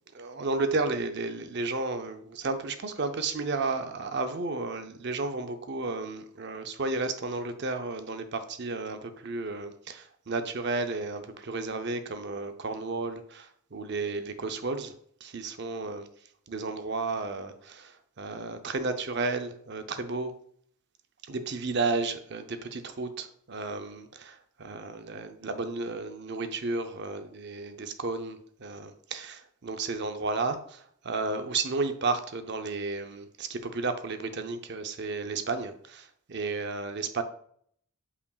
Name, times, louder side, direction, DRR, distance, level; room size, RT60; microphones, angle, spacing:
voice 1, 0.1-14.9 15.2-16.1 16.5-20.3 21.2-37.2, right 3 dB, 50° right, 0.6 m, -33 dB
8.3 x 4.9 x 2.4 m
head